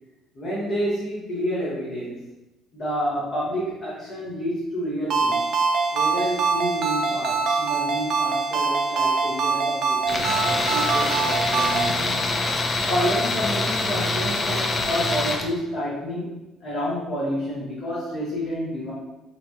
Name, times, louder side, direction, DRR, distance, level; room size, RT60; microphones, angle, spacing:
voice 1, 0.3-2.2 2.7-5.5 5.9-12.2 12.9-16.3 16.6-18.9, equal, 50° left, -7 dB, 0.8 m, -29 dB
Ringtone, 5.1-12.0, right 4 dB, 60° right, 0.3 m, -24 dB
Tools, 10.1-15.5, left 2 dB, 35° left, 0.4 m, -25 dB
2.7 x 2.1 x 2.6 m, 1.0 s
hypercardioid pair, 60°, 0 cm